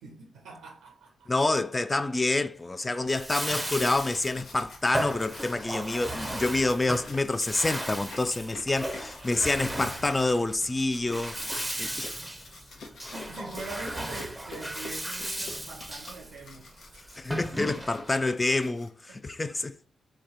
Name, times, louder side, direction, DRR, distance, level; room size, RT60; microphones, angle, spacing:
voice 1, 0.0-1.3 5.6-6.4 11.6-11.7 13.1-17.1 19.1-19.2, right 3 dB, 85° right, 0.6 m, -44 dB
voice 2, 1.3-12.1 17.2-19.8, left 2 dB, 30° left, 0.4 m, -28 dB
sound 1, 2.8-19.3, left 3 dB, 70° left, 0.7 m, -48 dB
Bathtub (filling or washing), 3.1-18.2, right 1 dB, 10° right, 0.7 m, -36 dB
3.2 x 2.2 x 3.7 m
supercardioid pair, 40°, 0 cm